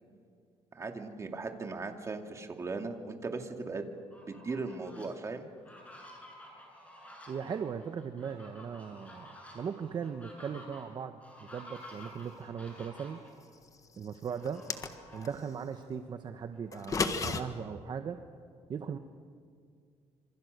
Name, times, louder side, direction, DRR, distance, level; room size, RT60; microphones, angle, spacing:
voice 1, 0.7-3.8 4.3-5.5, right 3 dB, 25° right, 5 dB, 2.5 m, -38 dB
Fowl, 4.0-5.1 5.5-13.3 14.3-15.4 15.8-15.9 16.3-18.0, left 1 dB, 10° left, 7.9 m, -52 dB
voice 2, 7.3-13.2 14.0-14.6 15.1-18.2 18.7-19.0, right 7 dB, 40° right, 7 dB, 1.2 m, -38 dB
sound 1, 14.4-15.3 16.7-17.4, left 4 dB, 30° left, 1.6 m, -32 dB
27.5 x 26.0 x 6.7 m, 2.2 s
cardioid pair, 140°, 11 cm